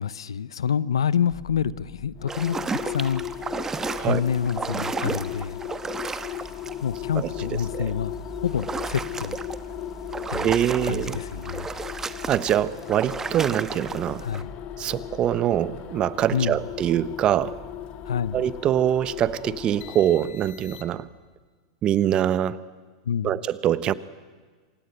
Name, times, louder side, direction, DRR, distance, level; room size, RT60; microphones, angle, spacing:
voice 1, 0.0-3.2 3.5-3.6 4.0-5.6 6.8-8.1 8.4-9.4 10.3-10.5 10.8-11.7 14.2-14.5 16.3-16.6 18.1-18.4 23.0-23.4, left 8 dB, 85° left, 19 dB, 0.7 m, -27 dB
sound 1, 1.3-19.9, left 1 dB, 5° left, 6.5 m, -45 dB
sound 2, 2.2-21.2, left 13 dB, 45° left, 1.9 m, -38 dB
sound 3, 2.3-7.0 7.4-7.7 8.5-9.6 10.1-14.4, right 4 dB, 15° right, 1.2 m, -33 dB
voice 2, 7.1-7.5 7.7-7.9 10.4-11.2 12.3-14.3 14.8-17.6 18.3-21.1 21.8-22.6 23.2-23.9, right 11 dB, 35° right, 17 dB, 1.0 m, -24 dB
27.0 x 17.0 x 9.2 m, 1.5 s
hypercardioid pair, 105°, 3 cm